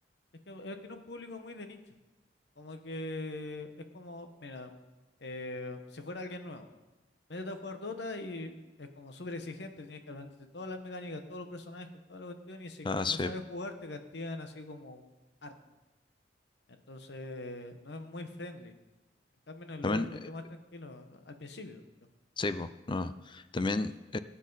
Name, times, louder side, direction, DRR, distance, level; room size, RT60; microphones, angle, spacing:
voice 1, 0.5-2.0 2.6-4.7 5.2-6.7 7.3-15.1 15.4-15.5 16.7-18.8 19.5-21.8, left 2 dB, 70° left, 7 dB, 1.1 m, -42 dB
voice 2, 12.8-13.3 19.8-20.3 22.4-24.2, left 3 dB, 25° left, 12 dB, 0.5 m, -32 dB
18.0 x 8.3 x 4.1 m, 1.1 s
head